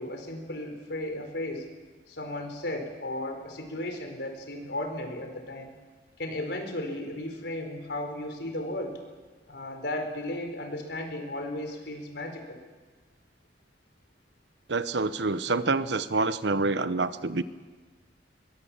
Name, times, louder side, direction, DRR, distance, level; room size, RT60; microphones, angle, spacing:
voice 1, 0.0-1.7 2.1-5.7 6.2-9.0 9.5-12.6, left 1 dB, 70° left, 5 dB, 4.4 m, -35 dB
voice 2, 14.7-17.4, right 3 dB, 70° right, 13 dB, 0.9 m, -27 dB
22.5 x 22.5 x 7.4 m, 1.4 s
head